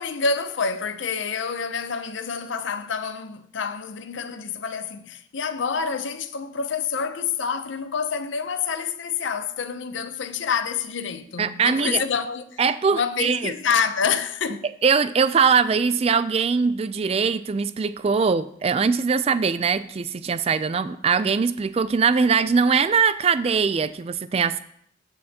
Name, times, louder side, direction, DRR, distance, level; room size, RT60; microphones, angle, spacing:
voice 1, 0.0-12.6 12.9-14.6, left 6 dB, 70° left, 0.6 m, -27 dB
voice 2, 11.4-12.0 12.6-13.5 14.8-24.6, right 5 dB, 30° right, 0.3 m, -21 dB
15.0 x 6.5 x 2.8 m
head